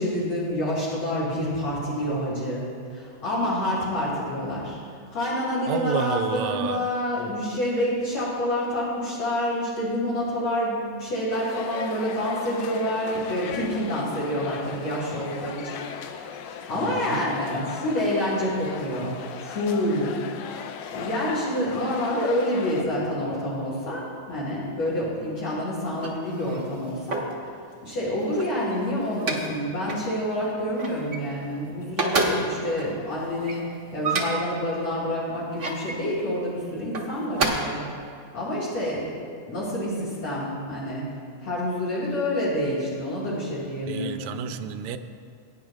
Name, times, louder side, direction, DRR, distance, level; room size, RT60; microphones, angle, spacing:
voice 1, 0.0-4.8 5.1-16.3 16.7-20.1 20.9-27.2 27.8-33.6 33.9-37.8 38.3-39.2 39.5-41.0 41.4-44.6, left 1 dB, 60° left, -8 dB, 3.6 m, -28 dB
voice 2, 5.7-6.9 16.8-17.2 43.9-45.0, right 9 dB, 80° right, 9 dB, 1.9 m, -30 dB
sound 1, 11.3-22.8, left 7 dB, 80° left, 1.9 m, -38 dB
sound 2, 25.8-27.4 28.1-29.6 29.9-30.1 30.4-31.6 31.8-34.6 35.3-36.0 36.8-37.5, right 3 dB, 50° right, 0.9 m, -30 dB
22.5 x 10.0 x 2.4 m, 2.2 s
omnidirectional pair, 3.4 m